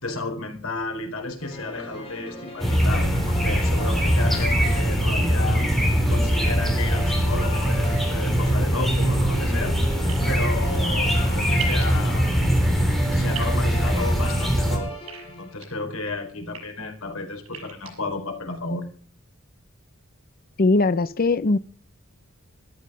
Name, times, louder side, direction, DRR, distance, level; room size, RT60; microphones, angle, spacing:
voice 1, 0.0-5.7 6.1-9.8 10.3-12.5 13.1-14.9 15.2-18.9, left 3 dB, 80° left, 4.2 m, -33 dB
sound 1, 1.4-15.7, equal, 25° left, 6.1 m, -37 dB
sound 2, 2.6-14.8, equal, ahead, 3.4 m, -22 dB
sound 3, 10.1-10.3 11.6-11.8 13.3-13.5 15.1-15.7 16.3-16.6 17.5-17.9, right 8 dB, 90° right, 6.1 m, -36 dB
voice 2, 20.6-21.6, left 3 dB, 45° left, 0.6 m, -20 dB
13.5 x 13.0 x 5.5 m
head